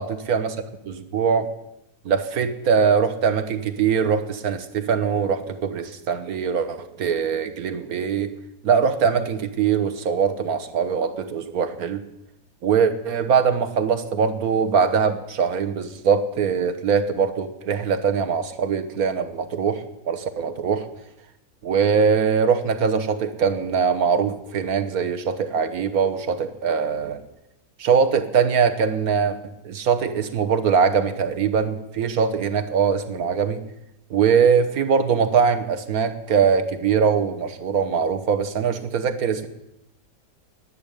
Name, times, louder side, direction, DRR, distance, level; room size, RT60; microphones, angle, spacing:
voice 1, 0.0-1.5 2.0-8.3 8.6-12.0 12.6-20.8 21.6-27.2 27.8-29.4 29.6-33.6 34.1-39.5, right 6 dB, 65° right, 8 dB, 1.6 m, -22 dB
10.5 x 9.8 x 10.0 m, 0.87 s
omnidirectional pair, 1.7 m